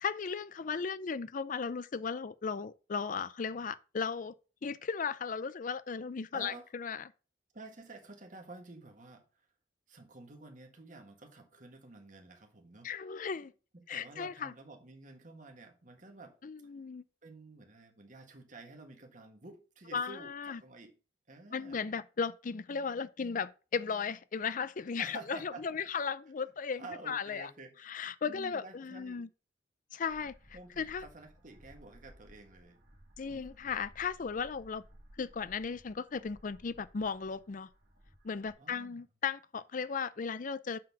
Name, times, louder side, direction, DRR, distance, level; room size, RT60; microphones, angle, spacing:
voice 1, 0.0-4.3 4.6-7.1 12.8-13.5 13.9-14.5 16.4-17.0 19.9-20.6 21.5-27.5 27.8-29.3 29.9-30.4 30.8-31.1 33.2-34.8 35.2-37.7 38.2-40.8, left 5 dB, 45° left, 0.4 m, -36 dB
voice 2, 6.3-6.7 7.5-9.4 9.9-12.9 13.7-16.3 17.2-20.9 21.3-21.9 25.0-25.8 26.7-27.9 28.2-29.2 30.5-32.8 33.3-33.8 38.6-39.0, right 3 dB, 45° right, 1.5 m, -50 dB
sound 1, 30.1-38.5, equal, 65° right, 2.0 m, -58 dB
7.5 x 3.9 x 5.8 m
head